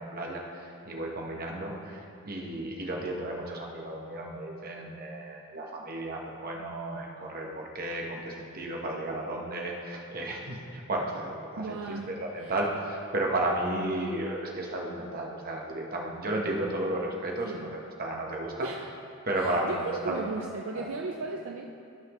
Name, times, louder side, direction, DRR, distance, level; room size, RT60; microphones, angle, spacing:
voice 1, 0.0-11.8 12.1-17.7 18.0-18.7 19.2-20.2 20.7-20.9, right 1 dB, 45° right, -1 dB, 1.2 m, -33 dB
voice 2, 11.6-12.5 17.4-17.8 18.6-18.9 19.3-21.6, right 3 dB, 65° right, 1 dB, 0.5 m, -36 dB
14.5 x 5.8 x 3.1 m, 2.6 s
head